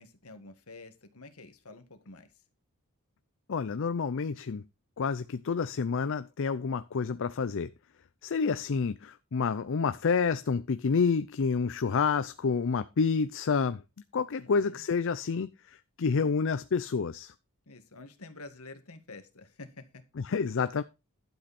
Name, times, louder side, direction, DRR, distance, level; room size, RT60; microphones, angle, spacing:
voice 1, 0.0-2.3 14.4-14.8 17.7-20.0, left 2 dB, 75° left, 1.8 m, -49 dB
voice 2, 3.5-4.6 5.0-7.7 8.2-13.8 14.1-17.3 20.2-20.8, left 5 dB, 60° left, 0.5 m, -29 dB
12.0 x 7.8 x 4.2 m
head